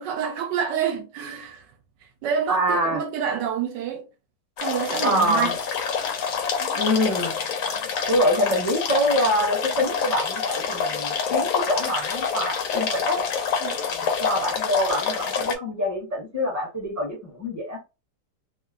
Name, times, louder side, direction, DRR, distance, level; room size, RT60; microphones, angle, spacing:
voice 1, 0.0-1.7 2.2-4.1 4.6-5.6 6.6-6.7 13.6-13.8, right 7 dB, 75° right, 1.1 m, -28 dB
voice 2, 2.5-3.0 5.0-5.5 6.7-7.3 8.1-13.2 14.2-17.8, equal, 10° right, 0.9 m, -25 dB
sound 1, 4.6-15.5, left 6 dB, 70° left, 0.8 m, -27 dB
3.0 x 2.3 x 2.5 m
omnidirectional pair, 2.0 m